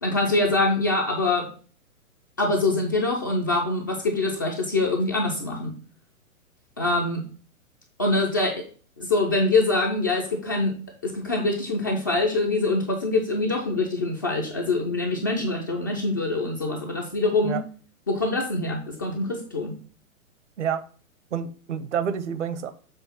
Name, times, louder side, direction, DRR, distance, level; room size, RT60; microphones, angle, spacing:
voice 1, 0.0-1.5 2.4-5.7 6.8-7.2 8.0-8.6 9.0-10.7 11.0-17.6 18.1-19.8, left 2 dB, 15° left, 0.4 m, -24 dB
voice 2, 21.3-22.7, right 8 dB, 55° right, 0.9 m, -28 dB
7.1 x 3.4 x 5.5 m
figure-of-eight pair, 115°, 43 cm